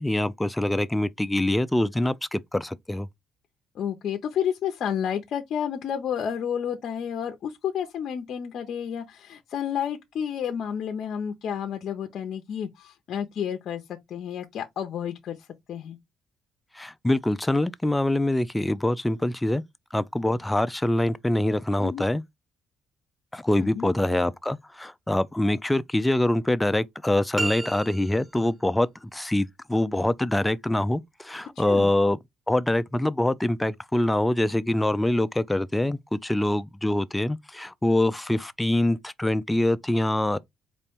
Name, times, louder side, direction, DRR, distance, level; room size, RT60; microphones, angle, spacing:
voice 1, 0.0-3.1 16.7-19.6 19.9-22.2 23.3-32.2 32.5-40.4, left 1 dB, 10° left, 0.3 m, -24 dB
voice 2, 3.7-13.8 14.1-16.0 21.8-22.0 23.6-23.9 31.6-31.9, left 8 dB, 60° left, 0.6 m, -31 dB
sound 1, 27.3-28.5, right 3 dB, 20° right, 0.7 m, -32 dB
4.3 x 2.5 x 3.5 m
cardioid pair, 120°, 0 cm